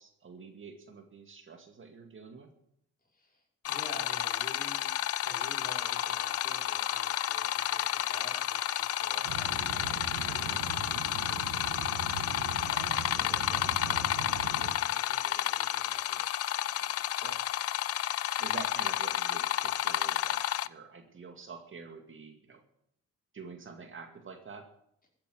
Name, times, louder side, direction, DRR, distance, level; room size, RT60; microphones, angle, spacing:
voice 1, 0.0-2.5 9.1-9.3 17.1-17.4 18.4-20.4 20.6-22.6 23.3-24.7, right 5 dB, 40° right, 4 dB, 2.2 m, -47 dB
voice 2, 3.0-4.9 5.2-10.6 12.7-16.4, left 2 dB, 30° left, 0 dB, 5.3 m, -50 dB
sound 1, 3.6-20.7, left 12 dB, 55° left, 0.5 m, -31 dB
sound 2, 9.2-14.7, right 5 dB, 85° right, 1.8 m, -40 dB
14.5 x 8.6 x 7.8 m, 0.74 s
cardioid pair, 90°, 30 cm